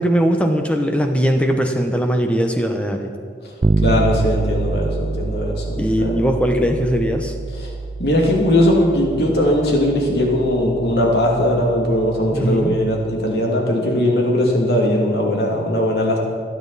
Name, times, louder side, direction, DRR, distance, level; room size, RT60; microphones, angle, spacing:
voice 1, 0.0-3.1 5.7-7.3 12.3-12.7, equal, 5° left, 4 dB, 0.9 m, -19 dB
Bass guitar, 3.6-13.3, right 3 dB, 30° right, 0.3 m, -26 dB
voice 2, 3.8-6.2 7.6-7.7 8.0-16.2, left 1 dB, 70° left, -1 dB, 2.5 m, -19 dB
27.0 x 9.3 x 4.1 m, 2.1 s
head